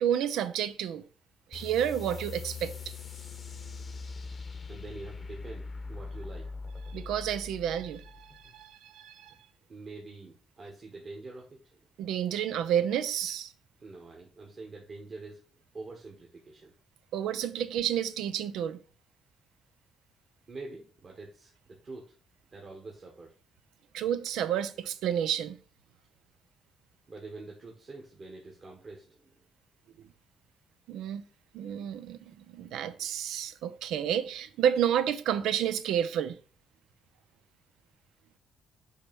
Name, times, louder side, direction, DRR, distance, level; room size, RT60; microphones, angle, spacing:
voice 1, 0.0-1.0 1.5-2.7 6.9-9.4 12.0-13.5 17.1-18.8 23.9-25.6 30.9-31.2 31.5-36.4, right 9 dB, 85° right, 0.5 m, -30 dB
sound 1, 1.5-8.6, left 4 dB, 35° left, 0.8 m, -42 dB
voice 2, 4.7-6.5 9.7-11.9 13.8-16.7 20.5-22.2 22.5-23.3 27.1-29.5, right 3 dB, 40° right, 1.5 m, -46 dB
6.5 x 3.1 x 5.3 m
cardioid pair, 90°, 0 cm